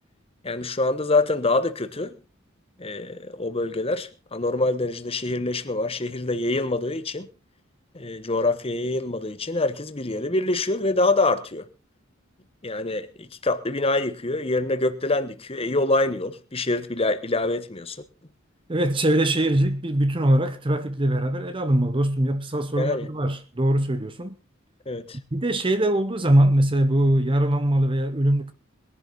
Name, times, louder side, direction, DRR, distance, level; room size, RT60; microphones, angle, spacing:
voice 1, 0.4-2.1 2.8-7.3 7.9-11.6 12.6-18.0 22.8-23.1 24.9-25.2, left 2 dB, 30° left, 1.1 m, -25 dB
voice 2, 18.7-24.3 25.3-28.5, right 1 dB, 25° right, 0.9 m, -22 dB
21.0 x 11.0 x 4.0 m
head